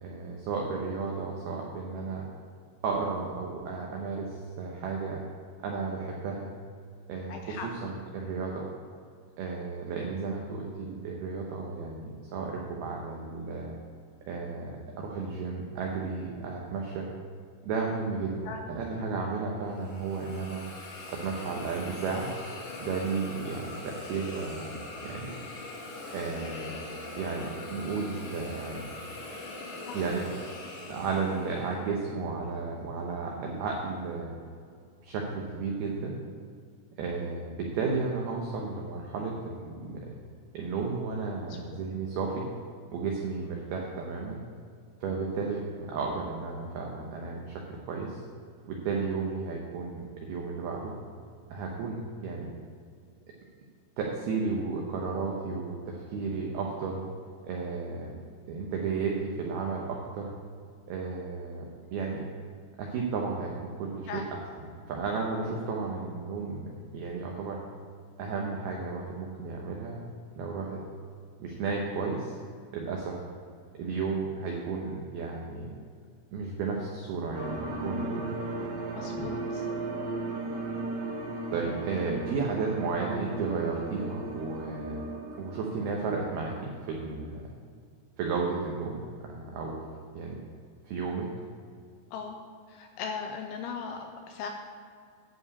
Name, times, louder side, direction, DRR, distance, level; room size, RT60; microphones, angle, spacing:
voice 1, 0.0-2.3 2.8-5.2 5.6-6.5 7.1-8.7 9.4-13.8 14.3-17.1 17.6-20.6 21.1-22.3 22.8-25.4 26.1-26.7 27.2-28.9 29.9-30.3 30.9-34.4 35.0-36.2 37.0-40.0 40.5-42.4 42.9-44.4 45.0-48.2 48.7-50.9 51.5-52.5 54.0-57.0 57.5-58.1 58.5-60.3 60.9-61.7 61.9-62.2 62.8-67.6 68.2-70.0 70.4-70.8 71.4-72.4 72.7-73.2 73.8-75.7 76.3-78.3 79.1-79.3 81.5-85.0 85.4-87.4 88.2-89.8 90.1-90.4 90.8-91.3, right 4 dB, 85° right, -1 dB, 2.2 m, -33 dB
voice 2, 7.3-7.7 18.5-18.6 29.9-30.1 41.5-41.6 64.1-64.2 78.9-79.6 92.1-92.4 92.7-94.5, left 5 dB, 85° left, 3 dB, 2.7 m, -38 dB
Hiss, 19.7-31.8, left 2 dB, 55° left, 2.6 m, -42 dB
sound 1, 77.3-87.2, right 2 dB, 65° right, 3.9 m, -36 dB
11.5 x 4.8 x 8.4 m, 2.2 s
omnidirectional pair, 5.9 m